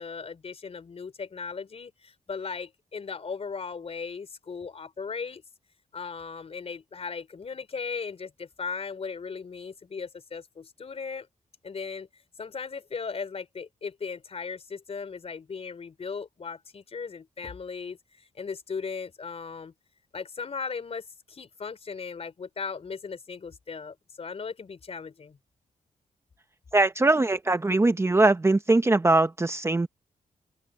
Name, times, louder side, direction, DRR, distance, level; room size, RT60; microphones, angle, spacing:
voice 1, 0.0-5.4 5.9-11.3 11.6-12.1 12.4-19.7 20.1-25.4, left 5 dB, 45° left, 4.3 m, -37 dB
voice 2, 26.7-29.9, right 2 dB, 20° right, 0.9 m, -21 dB
open air
cardioid pair, 95°, 14 cm